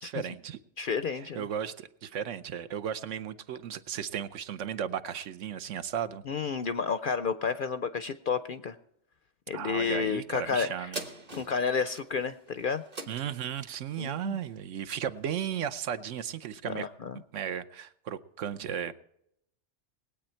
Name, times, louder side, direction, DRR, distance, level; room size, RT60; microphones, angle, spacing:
voice 1, 0.0-0.6 1.1-6.2 9.5-11.0 13.1-16.9 17.3-18.9, right 9 dB, 75° right, 12 dB, 1.0 m, -35 dB
voice 2, 0.8-1.4 6.3-8.8 9.5-10.9 11.4-12.8 14.0-14.4 16.6-17.2, left 6 dB, 55° left, 11 dB, 0.6 m, -31 dB
sound 1, 10.9-15.7 16.2-16.3, right 3 dB, 35° right, 1.1 m, -45 dB
20.0 x 8.6 x 4.4 m, 0.78 s
omnidirectional pair, 1.3 m